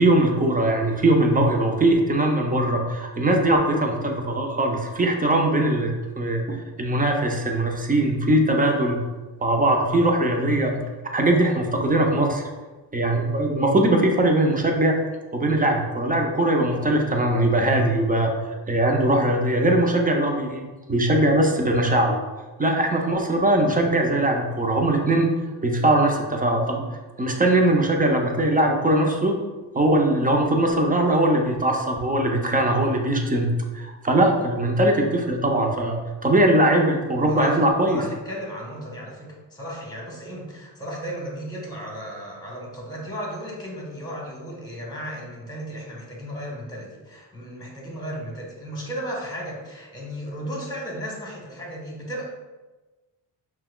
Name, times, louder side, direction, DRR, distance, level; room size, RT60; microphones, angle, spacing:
voice 1, 0.0-9.0 9.4-10.8 11.1-12.4 12.9-15.0 15.3-18.3 18.7-22.2 22.6-25.3 25.6-26.8 27.2-29.4 29.7-38.0, right 1 dB, 20° right, 2 dB, 0.6 m, -21 dB
voice 2, 37.3-37.6 37.9-52.2, equal, 10° left, -2 dB, 1.3 m, -35 dB
5.6 x 2.2 x 2.3 m, 1.2 s
cardioid pair, 70°, 43 cm